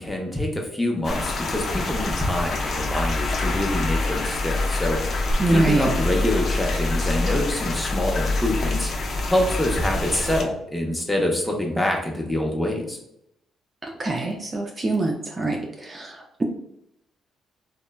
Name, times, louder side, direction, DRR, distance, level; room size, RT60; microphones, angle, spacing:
voice 1, 0.0-5.2 5.5-13.0, left 1 dB, 10° left, 0 dB, 0.6 m, -26 dB
sound 1, 1.0-10.4, left 2 dB, 55° left, 0.4 m, -26 dB
voice 2, 5.4-5.9 13.8-16.4, right 2 dB, 25° right, 1 dB, 0.4 m, -24 dB
3.1 x 2.1 x 2.2 m, 0.78 s
cardioid pair, 90°, 0 cm